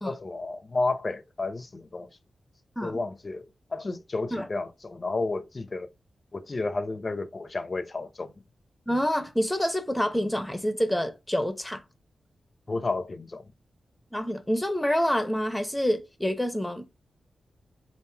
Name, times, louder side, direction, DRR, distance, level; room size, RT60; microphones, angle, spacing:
voice 1, 0.0-2.1 2.8-3.4 3.7-5.9 6.3-8.3 12.7-13.5, left 3 dB, 35° left, 0.6 m, -31 dB
voice 2, 8.9-11.8 14.1-16.8, equal, 5° left, 0.8 m, -27 dB
3.5 x 2.5 x 4.5 m
wide cardioid pair, 90°, 0 cm